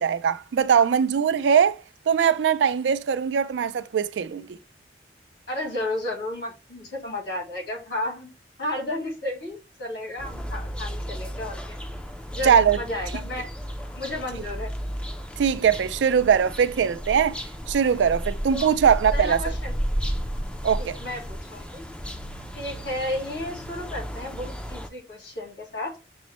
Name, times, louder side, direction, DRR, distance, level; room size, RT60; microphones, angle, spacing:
voice 1, 0.0-1.8 2.1-4.6 12.4-12.8 15.4-17.4 17.7-19.4 20.6-21.0, right 7 dB, 85° right, 0.3 m, -21 dB
voice 2, 5.5-8.3 8.6-11.8 12.3-13.5 13.9-14.7 18.5-18.7 19.1-19.8 20.8-21.9 22.5-25.9, left 1 dB, 75° left, 1.7 m, -32 dB
sound 1, 10.2-24.9, equal, 5° left, 0.4 m, -33 dB
6.2 x 2.1 x 2.9 m
head